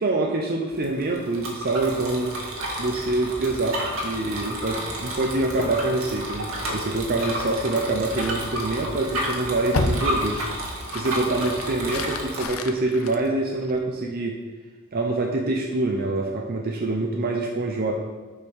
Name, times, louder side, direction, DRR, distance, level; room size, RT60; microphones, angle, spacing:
voice 1, 0.0-2.4 2.8-10.4 10.9-14.4 14.9-17.9, right 2 dB, 50° right, 1 dB, 0.7 m, -25 dB
Bicycle, 0.7-12.4, right 1 dB, 85° right, 1.7 m, -31 dB
sound 1, 5.6-14.0, left 2 dB, 85° left, 0.7 m, -34 dB
8.2 x 5.3 x 4.7 m, 1.4 s
head